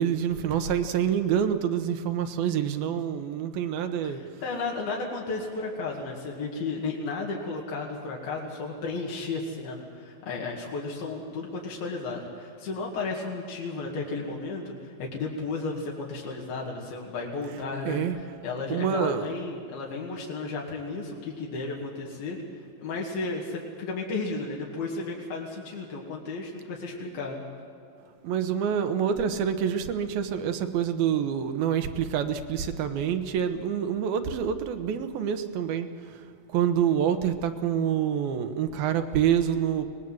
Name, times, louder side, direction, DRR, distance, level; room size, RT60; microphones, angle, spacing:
voice 1, 0.0-4.2 17.9-18.2 18.7-19.3 28.2-36.2 36.5-39.9, right 8 dB, 80° right, 8 dB, 2.9 m, -27 dB
voice 2, 4.0-18.0 18.4-22.4 22.8-27.4, left 3 dB, 85° left, -2 dB, 4.0 m, -33 dB
24.0 x 19.5 x 7.7 m, 2.5 s
omnidirectional pair, 4.2 m